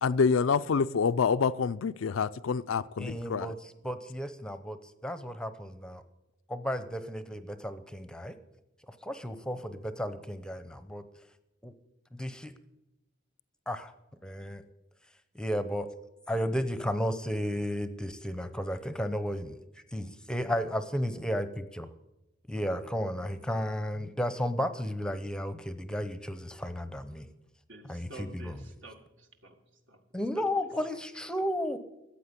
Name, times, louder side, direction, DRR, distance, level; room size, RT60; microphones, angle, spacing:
voice 1, 0.0-3.5, left 5 dB, 85° left, 0.4 m, -27 dB
voice 2, 3.0-6.0 6.5-8.4 8.9-11.0 11.6-11.7 12.1-12.5 13.7-13.9 14.2-14.6 15.3-15.9 16.3-19.6 19.9-21.9 22.5-27.3 27.9-28.6 30.1-31.8, equal, 5° left, 0.7 m, -33 dB
voice 3, 27.7-29.6 29.9-30.0 30.4-30.5 30.8-30.9 31.4-31.5, right 2 dB, 70° right, 2.0 m, -49 dB
14.5 x 8.4 x 8.2 m
head